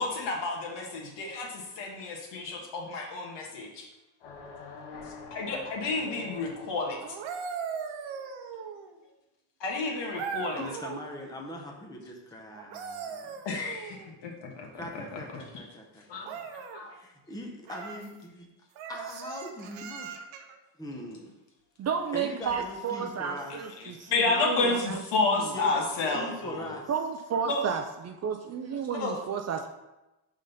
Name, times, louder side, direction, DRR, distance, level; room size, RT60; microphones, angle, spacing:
voice 1, 0.0-3.9 5.0-7.0 9.6-10.6 13.4-15.7 16.1-17.0 23.5-26.8 27.4-27.6 28.9-29.1, left 3 dB, 65° left, 0 dB, 1.5 m, -31 dB
sound 1, 4.2-7.1, left 3 dB, 90° left, 1.2 m, -46 dB
sound 2, 7.0-9.0 10.1-11.1 12.5-14.1 16.2-16.8 17.6-18.1 18.7-20.6 22.4-22.6, right 6 dB, 85° right, 0.9 m, -39 dB
voice 2, 10.6-13.4 14.7-16.4 17.0-18.5 18.9-20.1 20.8-21.3 22.1-23.5 25.5-26.8, left 1 dB, 10° left, 0 dB, 0.7 m, -41 dB
voice 3, 21.8-24.1 24.4-25.0 26.9-27.8 28.2-29.7, right 6 dB, 35° right, 5 dB, 0.4 m, -32 dB
5.3 x 3.8 x 5.3 m, 0.99 s
cardioid pair, 135°, 46 cm